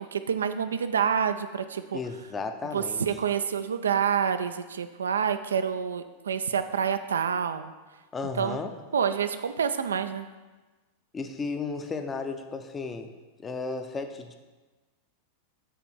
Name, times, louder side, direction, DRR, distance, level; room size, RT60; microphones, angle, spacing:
voice 1, 0.0-2.0 2.7-7.7 8.4-8.6 8.9-10.3, right 7 dB, 70° right, 10 dB, 0.3 m, -27 dB
voice 2, 1.9-3.0 8.1-8.7 11.1-13.1 13.4-14.3, left 4 dB, 20° left, 6 dB, 0.6 m, -34 dB
8.0 x 3.4 x 4.6 m, 1.3 s
figure-of-eight pair, 90°, 0 cm